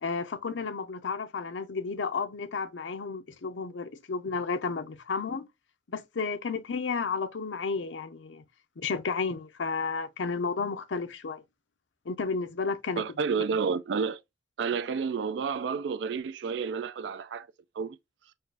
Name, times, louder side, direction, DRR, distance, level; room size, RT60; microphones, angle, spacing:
voice 1, 0.0-5.5 5.9-8.4 8.8-11.4 12.1-13.0, left 4 dB, 90° left, 0.6 m, -32 dB
voice 2, 13.0-14.2 14.6-17.5 17.8-18.0, right 5 dB, 70° right, 0.3 m, -30 dB
4.5 x 2.4 x 4.6 m
head